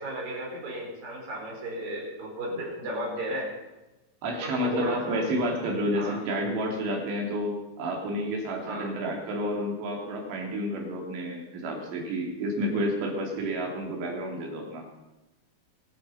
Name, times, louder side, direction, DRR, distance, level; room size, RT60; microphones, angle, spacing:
voice 1, 0.0-3.5 4.4-5.3 5.9-6.2 8.6-8.9, equal, 50° right, -3 dB, 6.3 m, -34 dB
voice 2, 4.2-14.9, equal, 75° right, 0 dB, 5.1 m, -30 dB
25.5 x 9.1 x 5.7 m, 1.0 s
omnidirectional pair, 5.1 m